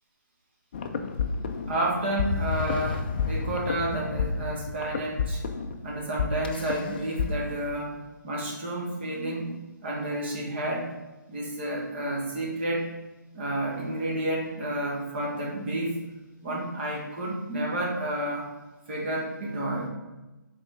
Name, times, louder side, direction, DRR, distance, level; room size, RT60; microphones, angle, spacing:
sound 1, 0.7-7.3, left 5 dB, 30° left, 0.4 m, -30 dB
voice 1, 1.7-5.4 5.8-8.0 8.2-10.9 11.3-12.9 13.3-16.0 16.4-18.5 18.9-19.9, right 1 dB, 35° right, -2 dB, 1.3 m, -30 dB
5.2 x 3.8 x 5.0 m, 1.1 s
hypercardioid pair, 160°, 10 cm